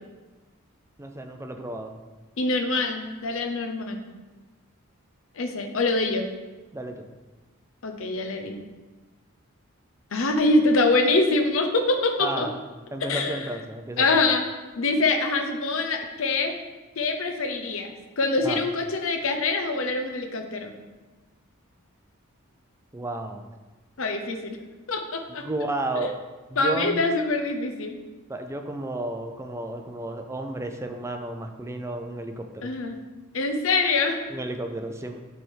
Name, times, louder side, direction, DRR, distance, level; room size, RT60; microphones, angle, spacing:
voice 1, 1.0-1.9 6.7-7.1 12.2-12.6 12.9-14.1 18.4-18.6 22.9-23.4 25.3-26.1 26.5-27.0 28.3-32.7 34.3-35.2, right 1 dB, 15° right, 5 dB, 0.4 m, -32 dB
voice 2, 2.4-4.0 5.4-6.3 7.8-8.6 10.1-12.5 13.1-13.5 14.0-14.4 14.8-16.5 17.0-20.7 24.0-24.6 24.9-25.4 26.0-26.1 26.6-28.0 32.6-33.0 33.3-34.2, left 3 dB, 70° left, 5 dB, 0.7 m, -24 dB
7.4 x 3.4 x 4.5 m, 1.2 s
head